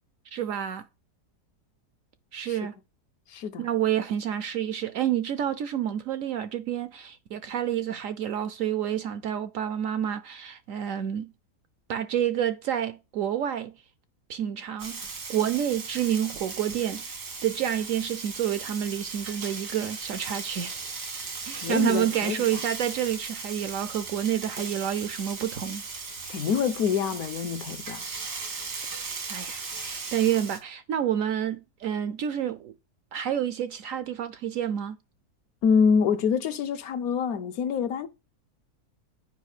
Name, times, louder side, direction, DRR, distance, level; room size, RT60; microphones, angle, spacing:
voice 1, 0.3-0.8 2.3-2.8 3.6-11.3 11.9-13.7 14.3-20.9 21.4-25.8 28.8-32.7 33.1-35.0, right 10 dB, 70° right, 0.8 m, -29 dB
voice 2, 3.3-3.7 21.6-22.6 26.3-28.1 35.6-38.1, left 6 dB, 70° left, 1.1 m, -26 dB
Frying (food), 14.8-30.6, right 4 dB, 85° right, 2.3 m, -37 dB
8.3 x 4.9 x 4.8 m
omnidirectional pair, 1.7 m